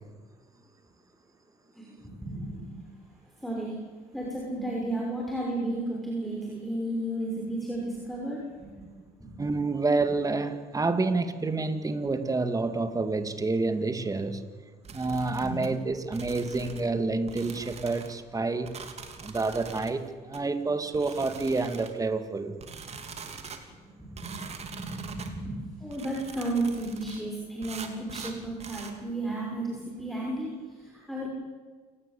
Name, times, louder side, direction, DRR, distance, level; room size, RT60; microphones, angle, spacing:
voice 1, 1.7-2.7 3.4-3.8 4.1-8.8 9.2-9.3 15.1-15.5 23.2-31.3, right 1 dB, ahead, -3 dB, 6.3 m, -34 dB
voice 2, 9.4-14.4 14.9-18.7 19.2-22.6, right 3 dB, 20° right, 9 dB, 2.3 m, -28 dB
sound 1, 14.8-15.7 16.1-16.9 17.3-18.1 18.7-19.9 20.3-20.4 20.9-22.0 22.6-23.6 24.2-25.3 25.9-27.2 27.6-28.9, right 5 dB, 40° right, 3.2 m, -43 dB
28.0 x 18.5 x 8.6 m, 1.5 s
cardioid pair, 110°, 17 cm